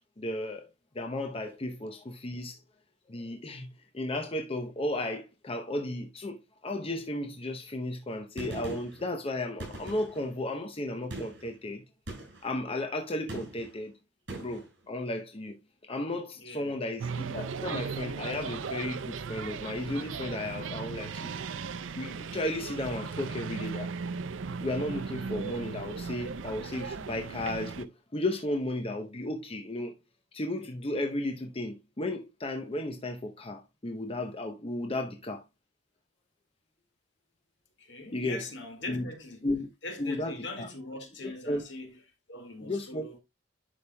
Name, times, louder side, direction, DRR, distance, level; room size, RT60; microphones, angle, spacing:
voice 1, 0.2-0.7 0.9-2.6 3.1-11.8 12.4-13.9 14.4-15.6 15.9-21.4 21.9-23.9 24.6-29.9 30.3-35.4 38.1-38.4 38.9-39.1 39.4-39.7 40.0-40.7 41.2-41.6 42.6-43.1, left 1 dB, 30° left, 0.8 m, -34 dB
Gunshot gunfire, 8.4-9.0 9.6-10.3 11.1-11.5 12.1-12.5 13.3-13.8 14.3-14.7, right 1 dB, 65° right, 5.2 m, -41 dB
voice 2, 16.4-16.8 37.8-39.4 39.8-42.0 42.3-43.2, left 2 dB, 65° left, 2.0 m, -41 dB
sound 1, 17.0-27.9, right 5 dB, 90° right, 0.5 m, -37 dB
11.0 x 5.1 x 2.2 m
head